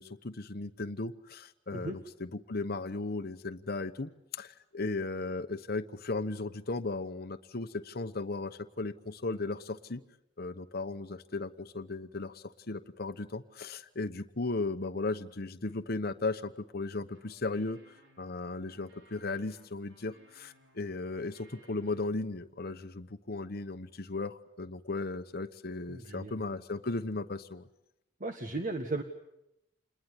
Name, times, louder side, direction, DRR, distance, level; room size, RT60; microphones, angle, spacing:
voice 1, 0.0-10.0 10.4-17.8 18.2-27.6, left 3 dB, 55° left, 8 dB, 1.0 m, -36 dB
sound 1, 17.1-22.0, right 1 dB, 80° right, 6.0 m, -62 dB
voice 2, 25.9-26.3 28.2-29.0, right 2 dB, 45° right, 6 dB, 1.7 m, -35 dB
28.0 x 21.0 x 9.7 m, 0.86 s
head